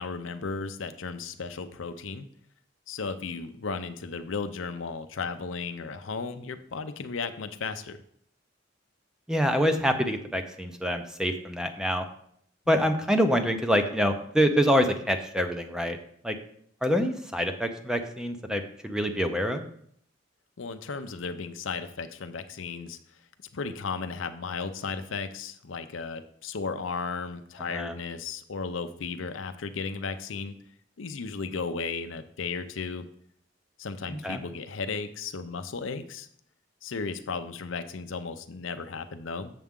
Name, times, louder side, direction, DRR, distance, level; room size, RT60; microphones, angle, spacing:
voice 1, 0.0-2.3 2.9-8.0 12.7-12.8 20.6-23.0 23.5-30.6 31.0-33.1 33.8-36.3 36.8-39.5, left 4 dB, 85° left, 9 dB, 0.6 m, -35 dB
voice 2, 9.3-12.0 12.7-16.0 16.2-16.4 16.8-19.6 27.7-27.9 34.1-34.4, equal, 5° right, 6 dB, 0.6 m, -26 dB
7.4 x 7.0 x 3.7 m, 0.66 s
head